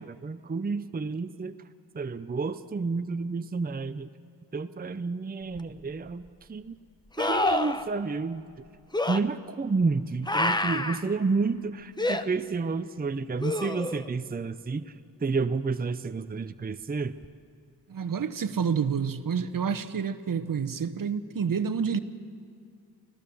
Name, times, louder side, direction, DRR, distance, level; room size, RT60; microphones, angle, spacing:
voice 1, 0.0-1.6 1.9-4.1 4.5-6.2 6.5-6.8 7.2-8.5 9.1-15.0 15.2-17.2, right 4 dB, 25° right, 10 dB, 0.7 m, -30 dB
sound 1, 5.6-5.7 7.2-7.8 8.9-9.2 10.3-11.0 12.0-12.2 13.4-14.1 17.2-17.3, left 1 dB, 10° left, 0.9 m, -27 dB
voice 2, 17.9-22.0, right 6 dB, 55° right, 12 dB, 1.0 m, -28 dB
25.0 x 16.5 x 7.1 m, 2.3 s
cardioid pair, 55°, 38 cm